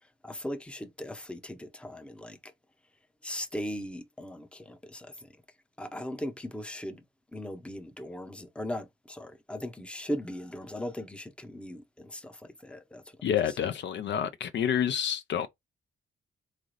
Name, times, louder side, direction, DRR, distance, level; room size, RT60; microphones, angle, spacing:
voice 1, 0.2-2.5 3.2-5.3 5.8-7.0 7.3-13.2, left 1 dB, 5° left, 0.7 m, -38 dB
voice 2, 13.2-15.5, left 9 dB, 60° left, 0.5 m, -28 dB
3.8 x 3.3 x 3.9 m
cardioid pair, 130°, 21 cm